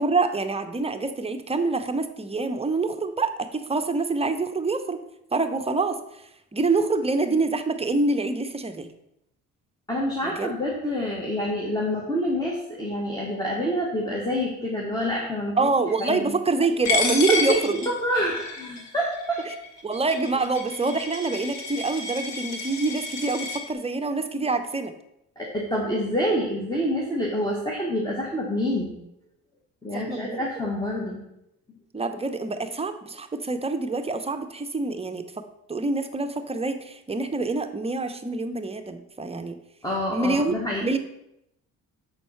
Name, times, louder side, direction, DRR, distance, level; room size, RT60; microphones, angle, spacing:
voice 1, 0.0-5.0 5.3-6.2 6.5-8.9 10.2-10.5 15.6-17.8 19.8-24.9 29.9-30.5 31.9-35.2 35.7-39.5 40.1-40.5 40.8-41.0, right 3 dB, 20° right, 7 dB, 0.7 m, -26 dB
voice 2, 9.9-15.6 16.0-16.3 17.8-19.4 25.4-28.9 29.8-31.2 39.8-40.8, equal, 15° left, -4 dB, 1.5 m, -27 dB
Coin (dropping), 16.8-23.6, left 4 dB, 65° left, 1.5 m, -30 dB
6.4 x 4.2 x 5.6 m, 0.82 s
cardioid pair, 90°, 30 cm